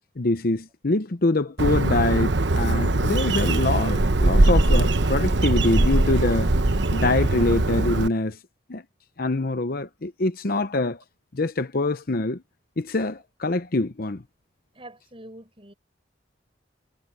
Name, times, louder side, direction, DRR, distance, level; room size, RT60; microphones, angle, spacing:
voice 1, 0.2-6.5 6.9-8.4 8.7-8.8 9.2-11.0 11.3-12.4 12.8-14.2, left 2 dB, 50° left, 0.8 m, -24 dB
Bird, 1.6-8.1, right 2 dB, 65° right, 1.1 m, -21 dB
voice 2, 14.7-15.7, right 1 dB, 30° right, 6.7 m, -45 dB
head